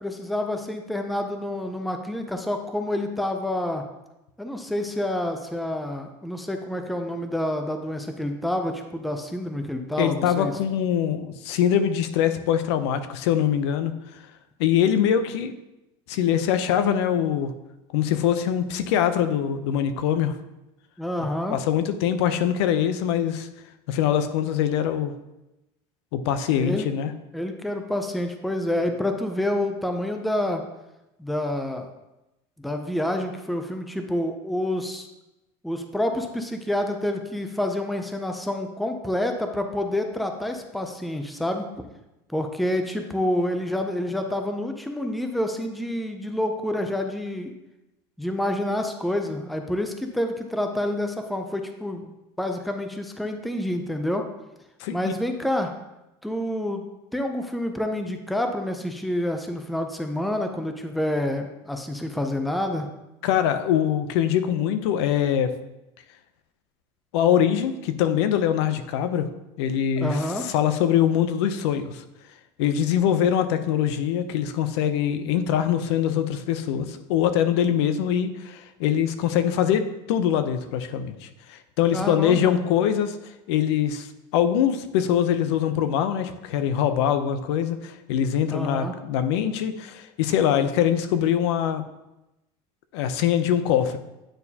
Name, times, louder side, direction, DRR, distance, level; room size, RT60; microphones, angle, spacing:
voice 1, 0.0-3.8 4.4-10.5 21.0-21.6 26.5-26.9 27.3-30.6 31.2-31.9 32.6-35.1 35.6-41.9 42.3-47.5 48.2-52.1 52.4-54.2 54.9-55.7 56.2-56.9 57.1-62.9 70.0-70.5 81.9-82.5 88.5-89.0, left 1 dB, ahead, 5 dB, 0.3 m, -28 dB
voice 2, 10.0-13.9 14.6-15.5 16.1-17.5 17.9-20.4 21.2-23.5 23.9-25.1 26.1-27.1 54.8-55.1 63.2-65.5 67.1-69.3 69.6-72.0 72.6-79.8 80.1-83.2 83.5-84.1 84.3-91.8 92.9-94.0, left 9 dB, 85° left, 10 dB, 0.5 m, -23 dB
8.9 x 4.3 x 2.8 m, 0.95 s
cardioid pair, 165°, 14 cm